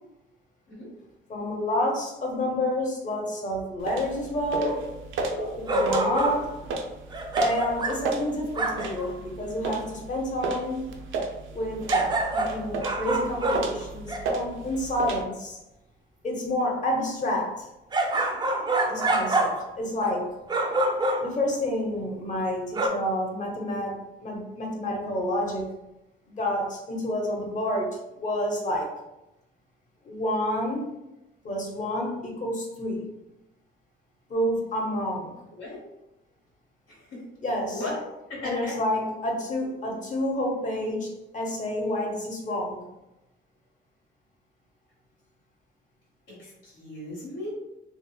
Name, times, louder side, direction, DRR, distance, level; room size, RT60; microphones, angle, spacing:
voice 1, 1.3-4.7 5.7-6.5 7.4-10.9 11.5-15.6 16.2-17.7 18.9-20.3 21.2-25.7 26.3-29.0 30.0-30.9 31.4-33.0 34.3-35.4 37.4-37.8 38.4-42.8, left 1 dB, 40° left, 0 dB, 0.8 m, -29 dB
sound 1, 3.8-15.2, right 3 dB, 80° right, 0.5 m, -34 dB
voice 2, 4.5-4.9 5.3-5.7 6.1-6.3 35.5-35.8 36.9-37.2 37.7-38.0 38.3-38.7 46.3-47.5, left 1 dB, 75° left, -8 dB, 1.5 m, -35 dB
sound 2, 5.7-6.4 7.1-8.1 8.6-9.1 11.9-14.3 17.9-19.7 20.0-20.2 20.5-21.4 22.7-22.9, right 2 dB, 20° right, 0.4 m, -26 dB
3.4 x 2.0 x 2.2 m, 0.92 s
cardioid pair, 90°, 20 cm